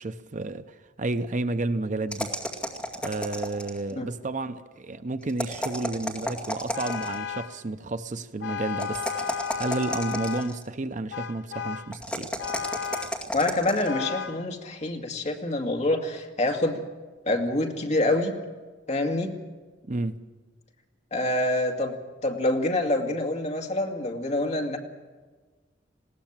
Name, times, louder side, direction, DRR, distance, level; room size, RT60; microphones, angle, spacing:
voice 1, 0.0-2.3 3.0-9.3 9.6-12.3 19.9-20.2, right 2 dB, 40° right, 11 dB, 0.7 m, -31 dB
sound 1, 2.1-3.9 5.3-7.2 8.8-10.6 11.9-13.9, equal, 5° left, 2.2 m, -33 dB
Vehicle horn car horn honking, 6.7-7.6 8.4-10.6 11.1-11.9 12.4-13.2 13.8-14.5, left 7 dB, 65° left, 0.6 m, -34 dB
voice 2, 13.3-16.8 17.3-18.3 18.9-19.3 21.1-21.9 22.2-24.8, left 2 dB, 40° left, 3 dB, 2.1 m, -26 dB
20.5 x 17.0 x 7.4 m, 1.3 s
head